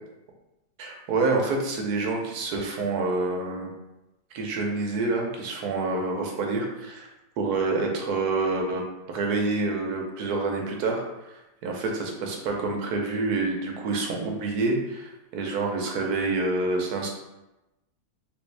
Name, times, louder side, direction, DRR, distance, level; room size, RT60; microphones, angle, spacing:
voice 1, 0.8-3.7 4.3-7.1 7.4-17.1, right 3 dB, 85° right, 1 dB, 1.2 m, -27 dB
3.5 x 2.6 x 3.2 m, 0.97 s
omnidirectional pair, 1.6 m